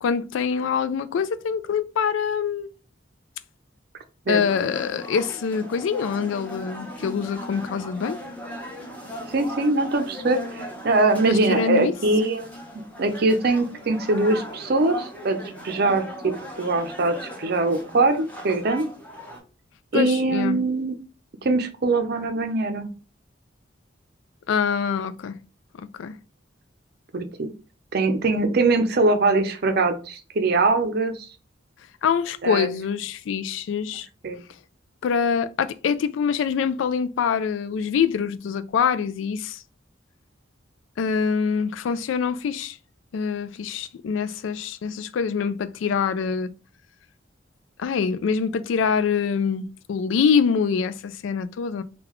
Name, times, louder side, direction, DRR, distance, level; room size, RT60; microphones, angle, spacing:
voice 1, 0.0-2.7 4.3-8.2 11.2-11.9 19.9-20.6 24.5-25.4 25.8-26.1 32.0-34.1 35.0-39.6 41.0-42.8 43.1-46.5 47.8-51.8, left 6 dB, 80° left, 0.3 m, -25 dB
sound 1, 4.4-19.4, equal, 10° left, 0.9 m, -38 dB
voice 2, 9.3-12.5 13.0-15.4 15.6-16.3 16.6-18.9 19.9-21.0 21.4-22.9 27.1-27.5 27.9-31.3 32.4-32.7 34.2-34.4, right 3 dB, 55° right, 0.5 m, -22 dB
3.8 x 2.3 x 3.0 m
head